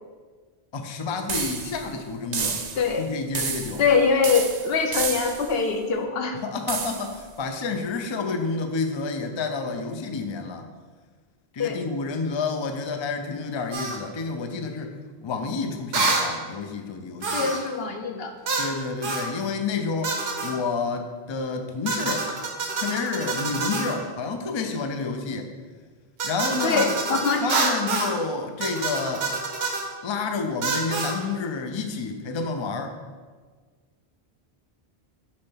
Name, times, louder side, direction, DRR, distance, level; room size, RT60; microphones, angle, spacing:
voice 1, 0.7-2.6 3.0-3.8 6.4-10.7 11.5-14.9 15.2-17.5 18.6-22.3 22.8-25.5 26.2-26.9 27.4-29.3 30.0-33.0, left 4 dB, 40° left, 5 dB, 0.4 m, -29 dB
sound 1, 1.3-1.9 2.3-3.0 3.3-3.9 4.2-5.6 6.7-7.2, right 6 dB, 50° right, 0.6 m, -30 dB
voice 2, 3.8-6.4 11.6-11.8 17.3-18.3 26.6-27.5, left 5 dB, 70° left, 5 dB, 0.9 m, -23 dB
sound 2, 13.7-14.0 15.9-16.3 17.2-17.7 18.5-18.7 19.0-19.3 20.0-20.5 21.9-24.0 26.2-28.2 28.6-29.9 30.6-31.2, right 3 dB, 70° right, 1.2 m, -27 dB
7.1 x 3.3 x 5.6 m, 1.5 s
omnidirectional pair, 1.1 m